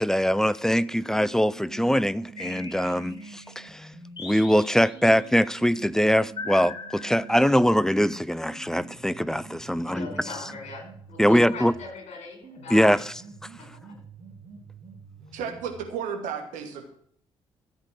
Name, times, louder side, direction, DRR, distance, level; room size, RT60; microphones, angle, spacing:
voice 1, 0.0-3.9 4.2-10.1 11.2-11.7 12.7-13.0, equal, 5° left, 0.5 m, -22 dB
sound 1, 0.9-4.2 4.9-11.9 12.4-15.9, right 3 dB, 45° right, 2.9 m, -46 dB
sound 2, 2.4-3.5 4.2-5.3 6.4-7.8, left 3 dB, 35° left, 4.2 m, -40 dB
voice 2, 9.7-13.1 13.6-14.0, left 4 dB, 50° left, 5.5 m, -41 dB
voice 3, 15.3-16.9, right 7 dB, 65° right, 2.3 m, -33 dB
14.0 x 8.1 x 6.2 m
figure-of-eight pair, 45°, 14 cm